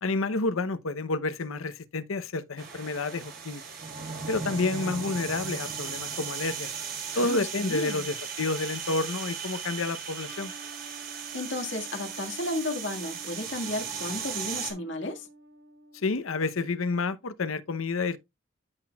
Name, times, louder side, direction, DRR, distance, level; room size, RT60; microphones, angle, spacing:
voice 1, 0.0-3.6 4.3-6.7 7.1-10.5 15.9-18.2, left 3 dB, 85° left, 0.8 m, -29 dB
sound 1, 2.6-14.7, right 6 dB, 45° right, 4.0 m, -37 dB
voice 2, 7.1-8.1 11.1-15.3, left 2 dB, 65° left, 1.8 m, -34 dB
sound 2, 10.2-16.5, right 3 dB, 75° right, 1.9 m, -51 dB
13.0 x 6.0 x 2.3 m
head